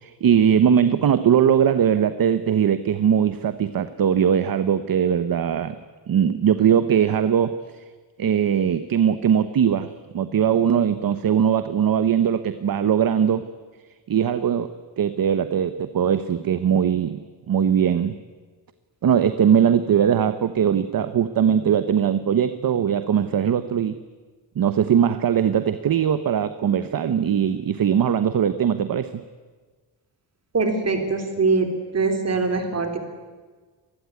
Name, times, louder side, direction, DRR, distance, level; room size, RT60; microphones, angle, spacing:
voice 1, 0.0-5.8 6.1-7.8 8.2-13.4 14.1-14.7 15.0-17.2 17.5-18.2 19.0-24.0 24.6-29.2, right 8 dB, 50° right, 11 dB, 1.0 m, -20 dB
voice 2, 30.5-33.0, right 4 dB, 35° right, 6 dB, 3.6 m, -23 dB
26.0 x 20.0 x 9.6 m, 1.4 s
wide cardioid pair, 170°, 43 cm